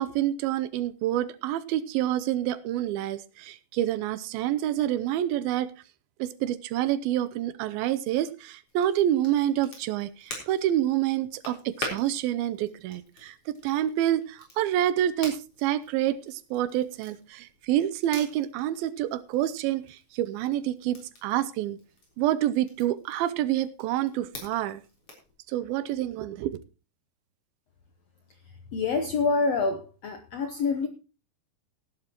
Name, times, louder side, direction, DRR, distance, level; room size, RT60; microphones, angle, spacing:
voice 1, 0.0-5.7 6.2-21.8 22.2-24.8 25.5-26.6, right 12 dB, 85° right, 2.6 m, -28 dB
Crackle, 8.7-25.3, left 2 dB, 40° left, 4.7 m, -46 dB
voice 2, 28.7-30.9, left 4 dB, 75° left, 1.5 m, -26 dB
17.0 x 11.5 x 3.0 m
omnidirectional pair, 4.2 m